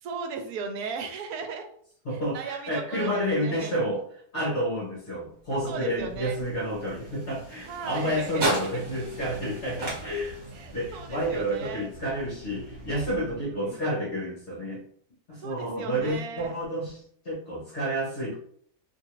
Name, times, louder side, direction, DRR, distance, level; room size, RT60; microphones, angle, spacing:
voice 1, 0.0-1.7 2.1-3.7 5.6-6.4 7.7-8.8 10.5-11.9 13.3-13.9 15.4-16.6, right 5 dB, 75° right, 5 dB, 1.0 m, -37 dB
voice 2, 2.0-4.0 4.3-10.4 10.7-14.8 15.3-18.3, equal, 50° left, -6 dB, 1.1 m, -30 dB
sound 1, 5.4-13.7, right 1 dB, 45° right, 1.3 m, -37 dB
2.8 x 2.4 x 2.9 m, 0.62 s
omnidirectional pair, 1.7 m